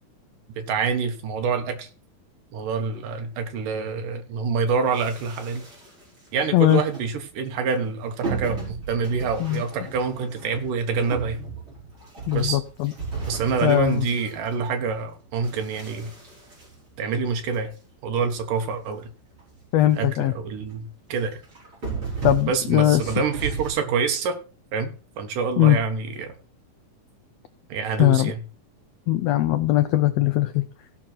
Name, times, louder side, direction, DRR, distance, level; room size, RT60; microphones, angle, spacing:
voice 1, 0.6-1.9 2.5-5.6 6.3-11.5 12.3-12.6 13.2-16.1 17.0-17.7 18.0-19.1 20.0-21.4 22.5-24.4 24.7-24.9 25.2-26.3 27.7-28.4, right 5 dB, 85° right, 6 dB, 3.1 m, -26 dB
sound 1, 4.9-6.2 6.7-7.0 8.2-15.0 15.4-17.6 18.1-18.2 18.3-18.4 18.9-19.0 19.3-19.5 19.8-20.2 20.6-20.8 21.4-23.7, right 5 dB, 40° right, 5.8 m, -35 dB
voice 2, 12.3-12.9 13.6-14.1 19.7-20.3 22.2-23.1 25.6-25.8 28.0-28.3 29.1-30.6, left 14 dB, 90° left, 10 dB, 1.4 m, -20 dB
16.5 x 6.0 x 4.4 m, 0.35 s
omnidirectional pair, 3.7 m